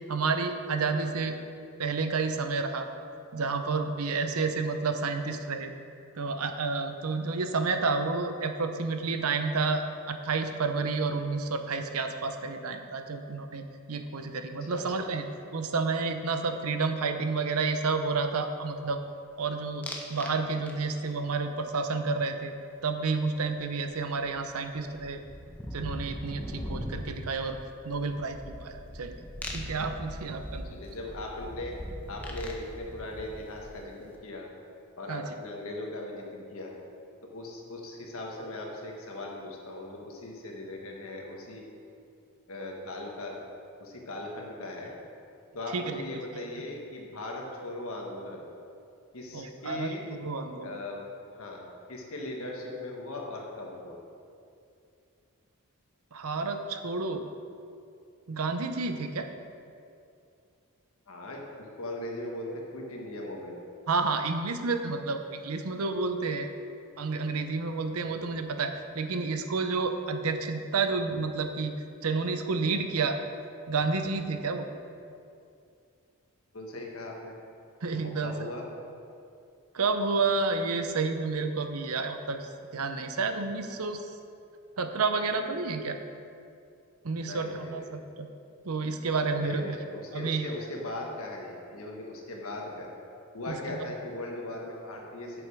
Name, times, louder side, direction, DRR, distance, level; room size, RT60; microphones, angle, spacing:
voice 1, 0.0-1.3 1.8-2.9 3.3-5.7 6.2-13.6 13.9-15.2 15.5-19.0 19.4-22.5 22.8-25.2 25.7-27.6 27.8-29.1 29.5-30.7 35.1-35.2 45.7-45.9 49.3-49.9 50.2-50.7 56.1-57.3 58.3-59.3 63.9-66.5 67.0-71.7 72.0-73.2 73.7-74.7 77.8-78.3 79.7-84.0 84.8-86.0 87.0-87.8 88.2-88.3 88.6-89.8 90.1-90.5 93.5-93.8, right 4 dB, 80° right, 7 dB, 0.7 m, -30 dB
sound 1, 19.8-20.4 20.7-21.1 23.6-23.7 23.9-34.0, equal, 5° left, 0.8 m, -40 dB
voice 2, 30.7-31.7 32.1-34.5 35.0-36.7 37.2-41.6 42.5-43.4 43.8-44.9 45.5-48.4 49.1-50.1 50.6-51.0 51.3-54.0 61.1-63.6 76.5-77.3 78.2-78.7 87.2-88.1 89.3-92.9 93.3-95.4, left 2 dB, 70° left, -1 dB, 1.5 m, -39 dB
8.3 x 7.1 x 4.9 m, 2.5 s
head